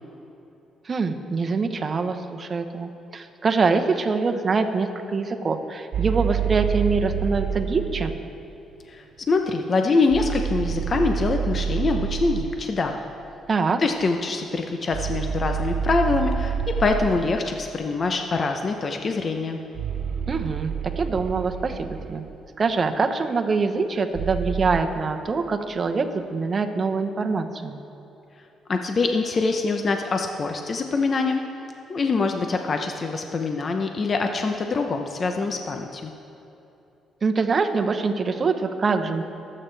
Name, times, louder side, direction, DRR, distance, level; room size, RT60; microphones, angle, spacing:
voice 1, 0.8-8.1 13.5-13.8 20.3-22.2 22.6-27.8 37.2-39.2, right 4 dB, 40° right, 6 dB, 1.0 m, -24 dB
sound 1, 5.9-8.2 10.1-12.6 14.9-17.5 19.7-22.3 24.1-24.8, right 8 dB, 65° right, 0.4 m, -28 dB
voice 2, 8.9-13.0 13.8-19.6 28.7-31.4 31.9-36.1, left 3 dB, 40° left, 4 dB, 0.8 m, -24 dB
23.0 x 8.7 x 3.4 m, 2.9 s
cardioid pair, 90°, 0 cm